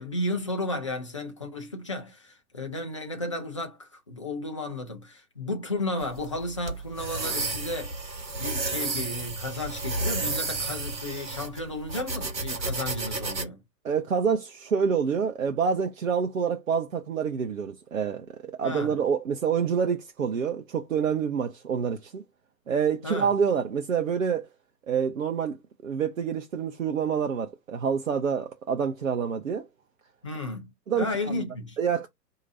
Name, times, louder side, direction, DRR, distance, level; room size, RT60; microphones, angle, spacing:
voice 1, 0.0-8.0 8.3-13.6 18.6-19.0 23.0-23.3 30.2-31.8, left 2 dB, 20° left, 0.5 m, -33 dB
sound 1, 6.0-13.5, right 3 dB, 85° right, 1.1 m, -32 dB
voice 2, 13.8-22.2 22.7-24.5 24.9-25.6 25.8-29.7 30.9-31.4 31.8-32.1, right 6 dB, 55° right, 0.7 m, -27 dB
4.4 x 2.8 x 2.6 m
figure-of-eight pair, 130°, 50 cm